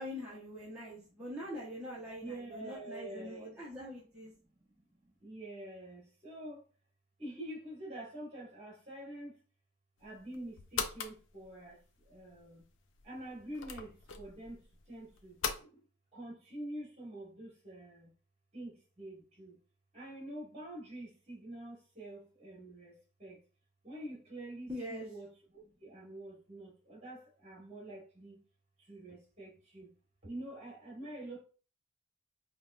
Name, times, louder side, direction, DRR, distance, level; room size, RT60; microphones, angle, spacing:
voice 1, 0.0-4.3 24.7-25.1, equal, 5° right, 1.1 m, -43 dB
voice 2, 2.2-3.5 5.2-6.6 7.2-9.4 10.0-12.7 13.0-15.8 16.1-18.1 18.5-19.6 19.9-23.4 23.8-28.4 28.8-29.9 30.2-31.4, right 1 dB, 30° right, 1.7 m, -47 dB
sound 1, 10.0-15.6, left 5 dB, 65° left, 0.5 m, -42 dB
5.0 x 2.5 x 2.5 m
head